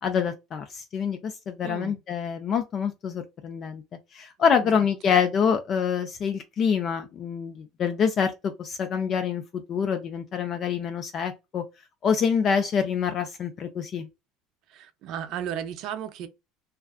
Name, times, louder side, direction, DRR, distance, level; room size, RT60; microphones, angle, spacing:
voice 1, 0.0-3.8 4.1-11.6 12.0-14.1, left 7 dB, 35° left, 0.3 m, -26 dB
voice 2, 1.6-2.0 4.6-4.8 14.7-16.3, right 9 dB, 55° right, 0.5 m, -34 dB
2.4 x 2.4 x 2.3 m
cardioid pair, 135°, 0 cm